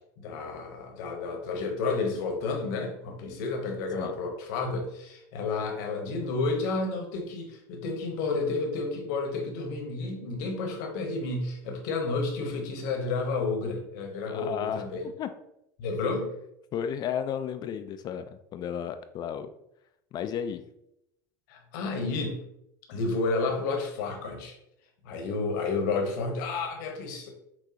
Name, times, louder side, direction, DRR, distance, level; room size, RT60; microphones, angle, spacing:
voice 1, 0.2-15.0 15.8-16.3 21.5-22.4 22.9-24.6 25.0-27.3, left 3 dB, 70° left, 3 dB, 1.1 m, -31 dB
voice 2, 14.3-14.9 15.2-15.3 16.7-19.5 20.1-20.6, left 8 dB, 40° left, 10 dB, 0.3 m, -33 dB
6.0 x 2.3 x 2.8 m, 0.80 s
hypercardioid pair, 90°, 11 cm